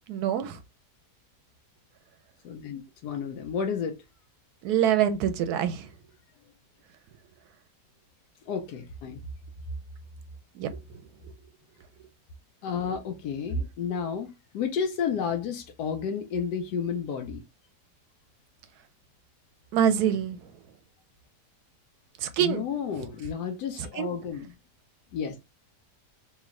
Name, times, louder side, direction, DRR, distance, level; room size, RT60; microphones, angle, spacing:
voice 1, 0.1-0.6 4.6-5.9 10.5-10.7 19.7-20.4 22.2-22.6 24.0-24.1, right 9 dB, 75° right, 1.0 m, -25 dB
voice 2, 2.4-4.0 8.4-9.2 12.6-17.4 22.4-24.5 25.1-25.4, left 6 dB, 75° left, 1.1 m, -31 dB
3.2 x 3.0 x 3.6 m
omnidirectional pair, 1.8 m